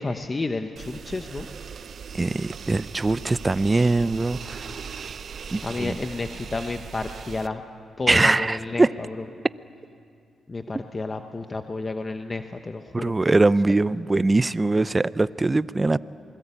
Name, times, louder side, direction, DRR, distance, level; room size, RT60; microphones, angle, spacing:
voice 1, 0.0-1.5 5.6-7.6 8.0-9.1 10.5-13.1, left 3 dB, 30° left, 1.1 m, -31 dB
sound 1, 0.8-7.5, right 6 dB, 60° right, 0.8 m, -39 dB
voice 2, 2.1-4.8 5.5-6.0 8.1-8.9 12.9-16.0, right 2 dB, 25° right, 0.6 m, -22 dB
27.5 x 21.5 x 8.5 m
cardioid pair, 75°, 0 cm